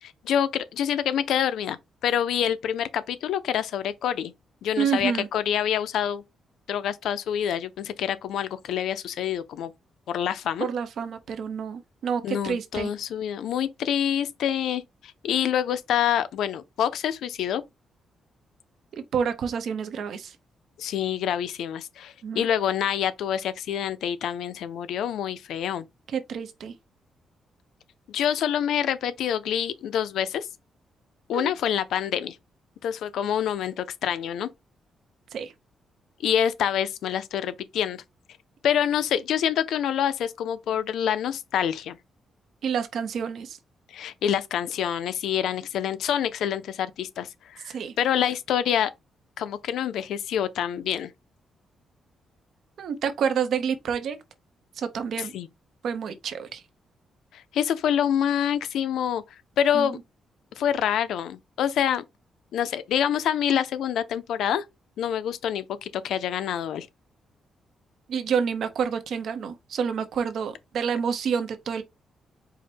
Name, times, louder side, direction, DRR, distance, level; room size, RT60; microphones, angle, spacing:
voice 1, 0.0-4.3 4.6-6.2 6.7-9.7 10.1-10.7 12.2-17.6 20.8-25.9 28.1-30.5 31.3-32.4 32.8-34.5 36.2-38.0 38.6-42.0 43.9-48.9 49.4-51.1 55.3-55.5 57.3-59.2 59.6-60.0 60.6-62.0 62.5-64.6 65.0-66.9, left 9 dB, 85° left, 0.5 m, -26 dB
voice 2, 4.8-5.3 10.6-12.9 18.9-20.4 22.2-22.5 26.1-26.7 31.3-31.5 35.3-35.5 42.6-43.6 47.7-47.9 52.8-54.2 54.8-55.3 55.8-56.6 59.7-59.9 68.1-71.8, right 7 dB, 65° right, 0.8 m, -28 dB
4.7 x 2.1 x 4.3 m
cardioid pair, 130°, 0 cm